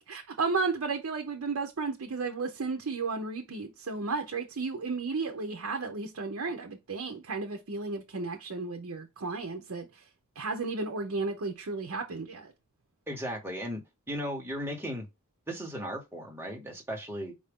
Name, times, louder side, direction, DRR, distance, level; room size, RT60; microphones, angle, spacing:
voice 1, 0.0-10.0 10.4-12.5, right 4 dB, 65° right, 0.7 m, -33 dB
voice 2, 13.1-13.8 14.1-15.0 15.5-17.3, equal, 10° right, 1.4 m, -36 dB
4.9 x 2.6 x 3.5 m
head